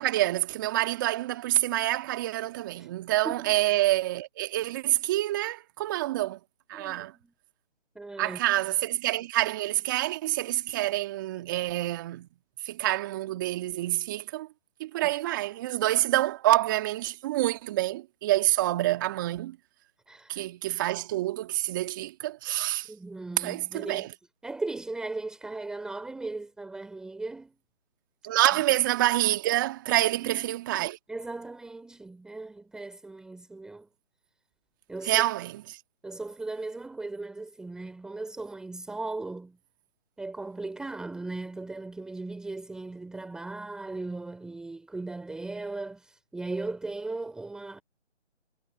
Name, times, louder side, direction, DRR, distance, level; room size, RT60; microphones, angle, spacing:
voice 1, 0.0-6.4 6.7-7.1 8.2-12.3 12.6-14.5 14.8-19.6 20.3-22.9 23.4-24.1 28.2-31.0 35.0-35.8, right 16 dB, 15° right, 2.1 m, -27 dB
voice 2, 3.2-3.6 6.7-7.3 7.9-8.4 20.1-20.5 22.9-24.1 24.4-27.5 29.9-30.4 31.1-33.9 34.9-35.2 36.0-39.6 40.2-47.8, right 3 dB, ahead, 3.2 m, -37 dB
figure-of-eight pair, 160°, 35 cm